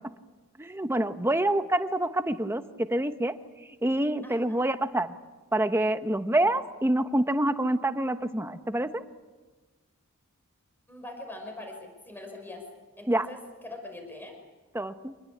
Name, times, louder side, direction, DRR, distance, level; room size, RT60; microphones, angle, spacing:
voice 1, 0.6-3.3 3.8-5.1 5.5-9.0 13.1-13.3 14.7-15.1, right 1 dB, 10° right, 9 dB, 1.0 m, -26 dB
voice 2, 4.2-4.6 10.9-12.6 13.0-14.4, left 2 dB, 10° left, 3 dB, 5.6 m, -43 dB
26.5 x 20.5 x 8.6 m, 1.3 s
head